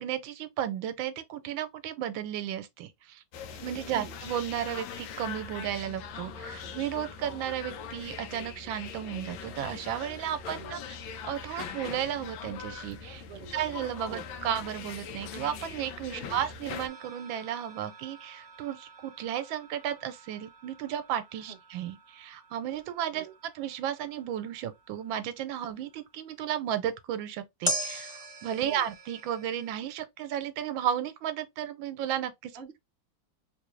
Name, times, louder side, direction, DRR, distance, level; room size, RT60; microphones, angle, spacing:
voice 1, 0.0-3.2 3.6-11.0 11.2-13.2 13.5-23.3 23.5-32.6, right 10 dB, 85° right, 1.4 m, -34 dB
sound 1, 3.3-16.9, left 6 dB, 80° left, 1.4 m, -41 dB
voice 2, 13.3-13.7 14.1-14.3 16.1-16.4 21.5-21.6 23.1-23.3 28.6-28.9 32.5-32.8, right 5 dB, 60° right, 0.6 m, -46 dB
sound 2, 16.8-26.2 27.6-29.7, equal, 15° left, 1.2 m, -41 dB
3.7 x 2.6 x 3.1 m
omnidirectional pair, 2.1 m